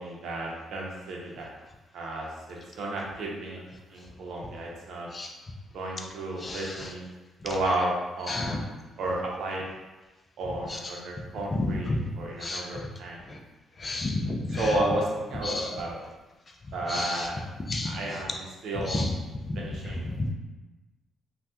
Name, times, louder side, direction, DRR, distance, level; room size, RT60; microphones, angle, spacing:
voice 1, 0.0-1.5 1.9-3.6 3.9-5.1 5.7-7.1 7.4-9.6 10.4-13.2 14.5-16.0 16.7-17.4 17.8-19.0 19.6-20.2, right 1 dB, 75° right, -2 dB, 0.7 m, -32 dB
voice 2, 8.3-8.6 11.9-12.0 12.4-12.6 13.8-14.6 15.5-15.7 16.9-17.2 17.7-18.0 18.9-19.1 20.2-20.3, left 2 dB, 35° left, 2 dB, 0.4 m, -30 dB
3.3 x 2.3 x 2.8 m, 1.1 s
cardioid pair, 90°, 0 cm